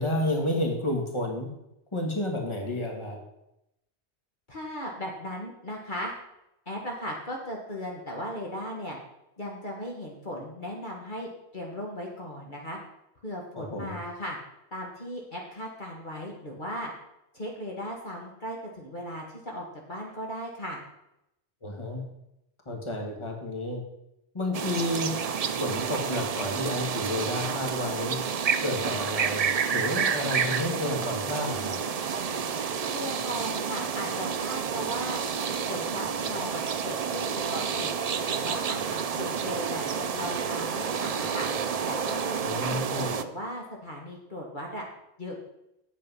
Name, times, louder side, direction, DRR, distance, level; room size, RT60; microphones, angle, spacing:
voice 1, 0.0-1.5 1.9-3.2 13.5-14.0 21.6-22.1 22.6-23.8 24.3-25.1 25.6-28.2 28.6-31.8 42.4-43.1, left 1 dB, 25° left, 1 dB, 1.7 m, -31 dB
voice 2, 4.5-6.1 6.7-9.0 9.4-12.8 13.2-14.4 14.7-16.9 17.3-20.8 32.9-35.2 35.7-37.9 38.3-41.5 41.8-44.8 45.2-45.4, equal, 45° left, -1 dB, 1.6 m, -37 dB
sound 1, 24.5-43.2, right 6 dB, 50° right, 0.5 m, -30 dB
8.8 x 7.7 x 5.5 m, 0.85 s
omnidirectional pair, 1.1 m